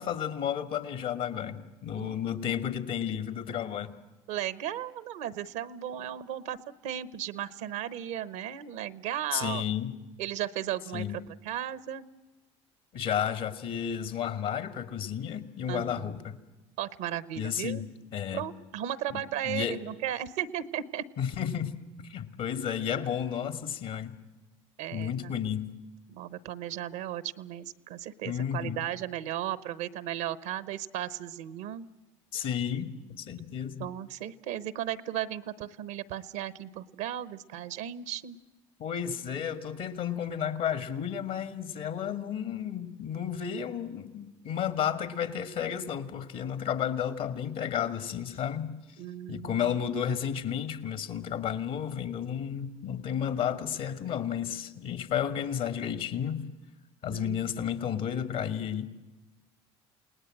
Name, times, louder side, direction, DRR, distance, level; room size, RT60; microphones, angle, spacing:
voice 1, 0.0-3.9 9.3-9.9 10.9-11.2 12.9-16.4 17.4-17.8 18.1-18.4 19.1-19.8 21.2-21.8 22.0-24.2 24.9-25.7 28.2-28.9 32.3-33.9 38.8-48.8 49.3-56.5 57.0-58.8, left 9 dB, 65° left, 9 dB, 2.0 m, -32 dB
voice 2, 4.3-6.6 6.8-9.6 10.2-12.1 15.7-16.1 16.8-17.8 18.3-21.1 24.8-25.4 26.1-31.9 33.8-38.4 49.0-49.8 57.1-57.4, right 11 dB, 80° right, 16 dB, 0.9 m, -35 dB
29.0 x 19.0 x 7.8 m, 1.1 s
hypercardioid pair, 70°, 15 cm